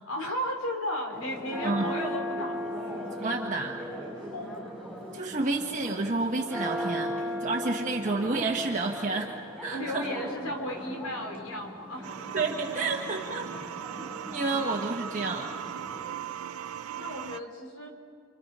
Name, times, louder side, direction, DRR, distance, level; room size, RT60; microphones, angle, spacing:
voice 1, 0.1-2.9 4.3-4.8 9.7-12.1 17.0-17.9, equal, 80° left, 2 dB, 4.1 m, -35 dB
Church bell, 1.1-16.1, equal, 5° left, 7.7 m, -38 dB
voice 2, 3.2-3.7 5.1-10.1 12.3-13.5 14.3-15.5, right 3 dB, 35° right, 0 dB, 1.3 m, -30 dB
sound 1, 12.0-17.4, right 9 dB, 80° right, 0.6 m, -38 dB
30.0 x 25.5 x 5.5 m, 2.2 s
head